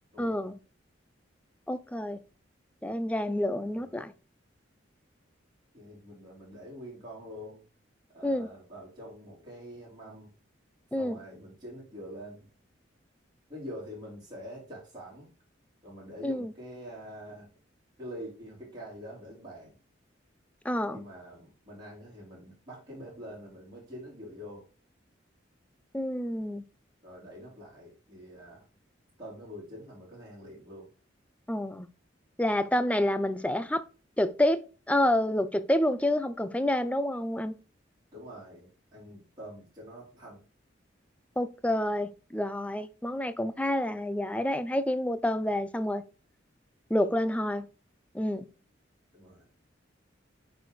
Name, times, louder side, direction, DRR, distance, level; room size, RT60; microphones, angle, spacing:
voice 1, 0.2-0.6 1.7-2.2 2.8-4.1 8.2-8.5 10.9-11.2 16.2-16.5 20.6-21.0 25.9-26.6 31.5-31.9 32.4-33.8 34.2-37.5 41.4-46.0 46.9-47.7 48.1-48.5, left 1 dB, 5° left, 0.4 m, -28 dB
voice 2, 3.7-4.0 5.7-7.6 8.1-10.3 10.9-12.5 13.5-15.3 15.8-17.5 18.0-19.7 20.9-24.7 27.0-28.7 29.2-30.9 38.1-40.4 49.1-49.5, equal, 20° right, 3.6 m, -45 dB
8.6 x 4.1 x 3.1 m
head